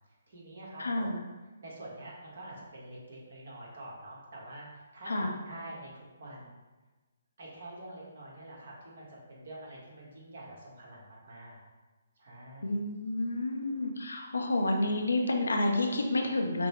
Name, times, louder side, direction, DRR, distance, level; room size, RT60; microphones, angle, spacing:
voice 1, 0.3-1.1 1.6-6.6 7.4-11.6 12.2-12.7, right 1 dB, 65° right, -4 dB, 1.5 m, -46 dB
voice 2, 0.8-1.2 5.1-5.3 12.6-16.7, left 2 dB, 80° left, 2 dB, 0.7 m, -29 dB
5.9 x 2.2 x 3.1 m, 1.2 s
figure-of-eight pair, 140°, 0 cm